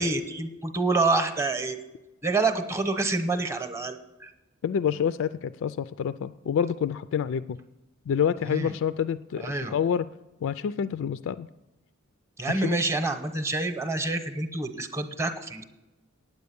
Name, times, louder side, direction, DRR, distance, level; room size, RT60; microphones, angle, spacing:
voice 1, 0.0-1.8 2.2-4.3 8.5-8.7 9.4-9.7 12.4-15.6, right 3 dB, 15° right, 8 dB, 0.8 m, -27 dB
voice 2, 4.6-7.6 8.1-10.1 10.4-11.5 12.6-12.8, left 8 dB, 65° left, 14 dB, 0.3 m, -27 dB
9.4 x 8.1 x 7.0 m, 0.98 s
head